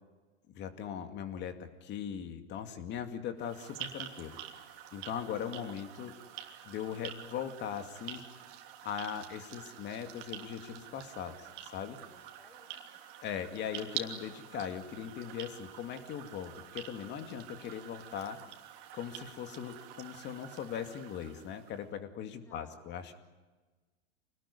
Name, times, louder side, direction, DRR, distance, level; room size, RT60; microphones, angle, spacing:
voice 1, 0.5-4.4 4.9-6.1 6.6-8.2 8.8-12.0 13.2-18.4 18.9-23.1, left 8 dB, 30° left, 7 dB, 2.4 m, -40 dB
sound 1, 3.4-21.8, right 10 dB, 50° right, 3.0 m, -47 dB
voice 2, 11.8-13.0 22.3-23.1, left 2 dB, 5° left, 7 dB, 3.8 m, -63 dB
26.0 x 19.5 x 10.0 m, 1.3 s
hypercardioid pair, 125°, 34 cm